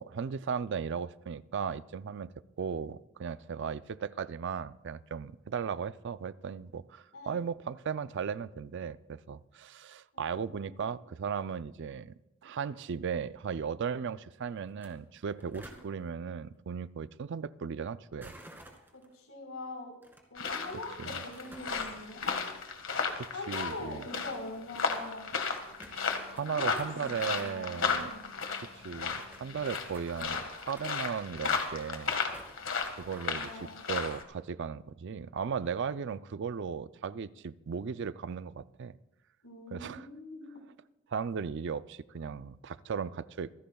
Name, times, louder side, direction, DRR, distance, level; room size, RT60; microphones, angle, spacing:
voice 1, 0.0-12.1 12.4-18.3 23.2-24.0 25.9-28.1 28.7-32.2 32.9-39.0 39.7-40.1 41.1-43.5, right 6 dB, 55° right, 0.4 m, -36 dB
voice 2, 10.1-10.9 15.5-15.7 18.9-22.3 23.3-25.3 26.4-28.2 33.3-33.9 39.4-40.5, left 2 dB, 85° left, 4.7 m, -43 dB
sound 1, 14.7-14.9 15.1-15.8 18.2-19.1 20.0-20.2 21.1-21.7 22.2-23.2 23.5-23.6 24.4-24.5 25.0-25.1 25.3-25.4 25.8-26.5 26.8-27.7 28.0-28.1 28.3-28.4 28.5-29.5 29.9-30.9 31.3-32.0 32.3-33.4, right 1 dB, 10° right, 2.2 m, -52 dB
sound 2, 20.4-34.2, left 5 dB, 65° left, 1.7 m, -35 dB
26.0 x 15.5 x 2.3 m
head